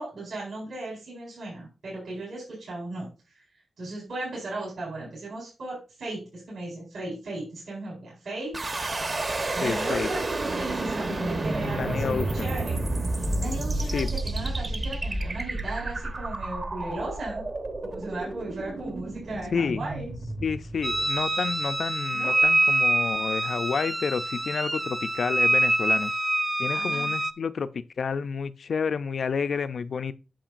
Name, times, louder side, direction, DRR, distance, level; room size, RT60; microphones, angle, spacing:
voice 1, 0.0-3.4 3.8-8.6 9.5-12.8 13.2-17.5 17.8-20.1 22.1-22.4 26.7-27.1, right 2 dB, 70° right, 4.5 m, -36 dB
sound 1, 8.5-21.5, right 2 dB, 35° right, 1.0 m, -30 dB
voice 2, 9.6-10.1 11.6-12.5 13.9-14.1 19.5-19.8 20.4-26.1 26.6-30.1, left 6 dB, 60° left, 0.4 m, -30 dB
sound 2, 20.8-27.3, right 1 dB, 10° right, 0.5 m, -25 dB
8.8 x 7.0 x 2.5 m
wide cardioid pair, 130°, 0 cm